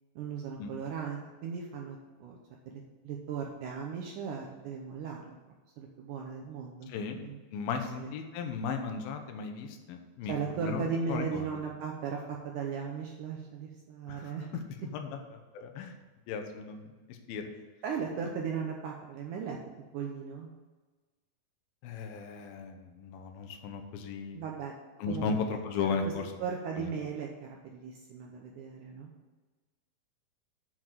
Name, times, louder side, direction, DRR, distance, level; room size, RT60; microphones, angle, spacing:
voice 1, 0.2-2.4 2.7-5.4 5.8-7.4 8.0-8.1 10.3-14.5 17.8-19.6 19.9-20.5 24.3-24.7 25.1-25.4 26.4-29.1, right 6 dB, 75° right, 0 dB, 1.9 m, -37 dB
voice 2, 6.9-7.2 7.5-11.6 14.1-14.3 14.8-15.9 16.3-17.5 21.8-24.4 25.0-26.3 26.8-26.9, left 5 dB, 75° left, 4 dB, 2.5 m, -36 dB
7.8 x 4.8 x 7.3 m, 1.3 s
omnidirectional pair, 4.4 m